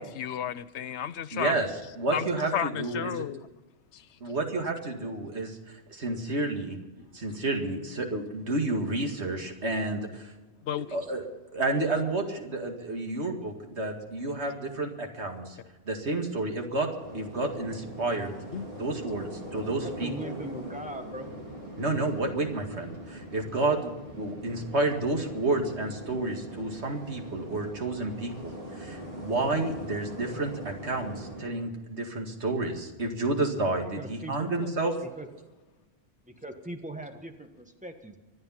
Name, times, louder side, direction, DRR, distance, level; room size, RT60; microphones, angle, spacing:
voice 1, 0.0-1.5 2.1-3.4 3.9-4.0 7.0-7.1 10.6-11.0 18.5-18.7 34.4-34.7, left 9 dB, 85° left, 1.0 m, -33 dB
voice 2, 1.3-1.7 2.0-3.2 4.2-5.6 5.9-6.8 7.1-10.3 10.9-11.2 11.5-15.6 15.9-16.9 17.1-18.3 18.7-20.3 21.8-23.9 24.2-34.9, right 2 dB, 85° right, 2.4 m, -30 dB
sound 1, 17.0-31.5, equal, 60° right, 5.0 m, -42 dB
voice 3, 19.8-21.3 34.0-34.5 35.0-35.3 36.2-38.2, right 1 dB, 5° right, 1.5 m, -40 dB
25.0 x 9.0 x 5.8 m
omnidirectional pair, 1.1 m